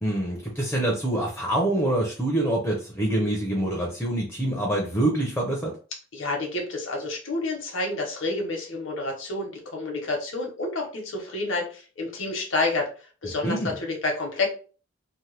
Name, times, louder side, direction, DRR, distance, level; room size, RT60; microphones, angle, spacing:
voice 1, 0.0-5.7 13.4-13.7, right 1 dB, 5° left, -1 dB, 0.5 m, -25 dB
voice 2, 6.1-12.9 13.2-14.5, left 2 dB, 75° left, 0 dB, 0.8 m, -29 dB
2.8 x 2.1 x 3.2 m, 0.37 s
head